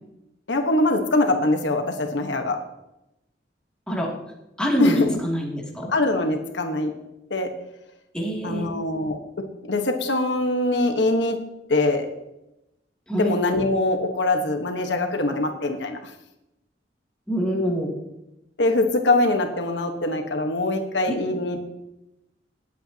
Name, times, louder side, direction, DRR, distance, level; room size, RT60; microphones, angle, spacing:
voice 1, 0.5-2.6 4.8-5.2 5.9-7.0 7.3-7.5 8.4-11.4 11.7-12.1 13.2-16.0 18.6-21.8, left 2 dB, 80° left, 5 dB, 1.3 m, -23 dB
voice 2, 4.6-5.9 8.1-8.7 13.1-13.3 17.3-17.9 21.1-21.2, equal, 5° left, -3 dB, 2.6 m, -25 dB
18.5 x 9.1 x 2.9 m, 0.90 s
head